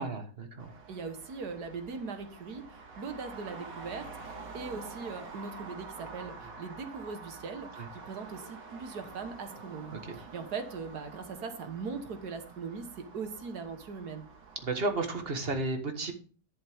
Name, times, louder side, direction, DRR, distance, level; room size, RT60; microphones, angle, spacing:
voice 1, 0.0-0.7 14.6-16.1, right 3 dB, 35° right, 5 dB, 1.5 m, -32 dB
Traffic noise roadway noise, 0.6-15.5, right 4 dB, 90° right, 2.3 m, -48 dB
voice 2, 0.9-14.3, right 5 dB, 70° right, 7 dB, 1.8 m, -40 dB
11.0 x 7.4 x 3.5 m, 0.40 s
omnidirectional pair, 1.8 m